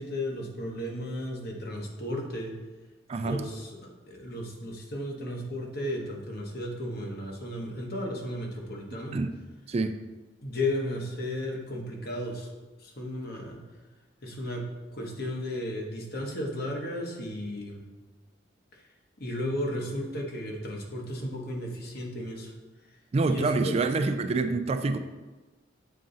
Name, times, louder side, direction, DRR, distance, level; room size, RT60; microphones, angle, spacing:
voice 1, 0.0-2.5 3.2-9.2 10.4-12.5 12.8-13.6 14.2-14.6 14.9-17.8 18.7-18.8 19.2-22.5 23.3-23.8, left 1 dB, 55° left, 0 dB, 1.2 m, -34 dB
voice 2, 3.1-3.4 9.1-9.3 9.7-10.0 23.1-25.0, right 3 dB, 35° right, 8 dB, 0.3 m, -26 dB
7.6 x 4.1 x 3.8 m, 1.2 s
head